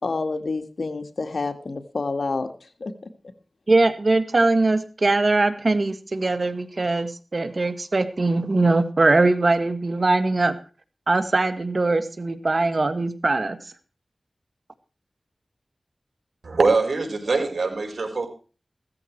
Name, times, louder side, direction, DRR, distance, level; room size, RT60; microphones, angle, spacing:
voice 1, 0.0-2.5 2.8-2.9, left 3 dB, 75° left, 8 dB, 2.0 m, -28 dB
voice 2, 3.7-10.6 11.1-13.6, right 2 dB, 55° right, 10 dB, 2.2 m, -21 dB
voice 3, 16.4-18.3, right 3 dB, 75° right, 4 dB, 5.1 m, -22 dB
16.5 x 14.0 x 4.7 m, 0.36 s
cardioid pair, 40°, 0 cm